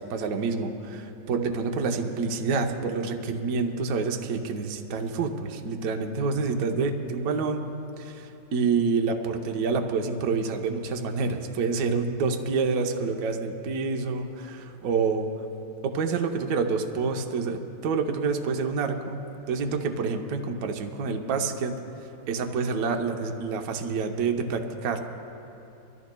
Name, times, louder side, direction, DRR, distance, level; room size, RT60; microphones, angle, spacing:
voice 1, 0.0-7.7 8.0-15.3 15.8-21.7 22.3-25.0, right 4 dB, 60° right, 4 dB, 1.1 m, -28 dB
26.5 x 14.0 x 2.2 m, 2.8 s
omnidirectional pair, 2.1 m